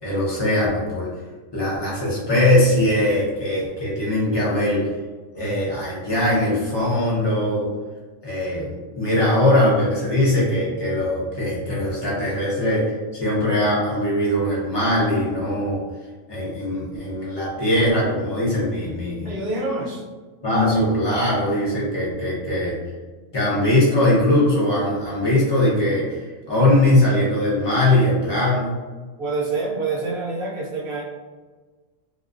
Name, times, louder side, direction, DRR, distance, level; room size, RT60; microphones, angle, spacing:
voice 1, 0.0-1.1 1.5-4.9 5.3-7.7 8.2-8.7 8.9-12.8 13.1-15.8 16.3-19.3 20.4-22.8 23.3-28.8, left 1 dB, 25° left, -7 dB, 0.6 m, -21 dB
voice 2, 19.2-20.0 29.2-31.0, right 3 dB, 60° right, -4 dB, 0.6 m, -26 dB
2.4 x 2.2 x 2.4 m, 1.3 s
omnidirectional pair, 1.3 m